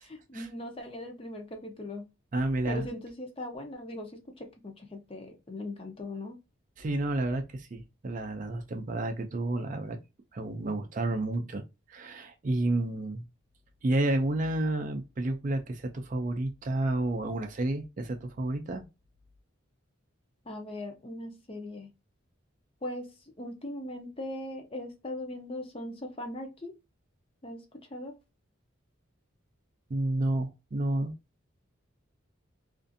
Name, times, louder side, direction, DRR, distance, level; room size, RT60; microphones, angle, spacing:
voice 1, 0.0-2.0 2.7-6.4 20.5-21.9 22.8-26.7 27.4-28.2, left 1 dB, 25° left, 0.5 m, -40 dB
voice 2, 2.3-2.9 6.8-10.0 10.3-11.6 11.9-13.2 13.8-18.8 29.9-31.1, right 2 dB, 40° right, 0.4 m, -30 dB
2.5 x 2.4 x 2.5 m
head